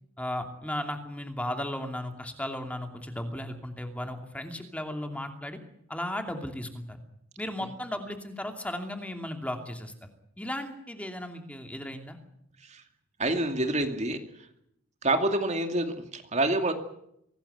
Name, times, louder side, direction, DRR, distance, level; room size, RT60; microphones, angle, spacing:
voice 1, 0.2-5.6 5.9-7.0 7.4-9.9 10.4-12.2, left 1 dB, 5° left, 5 dB, 2.7 m, -35 dB
voice 2, 13.2-14.2 15.0-16.7, right 2 dB, 35° right, 6 dB, 2.5 m, -27 dB
24.5 x 19.0 x 8.1 m, 0.75 s
head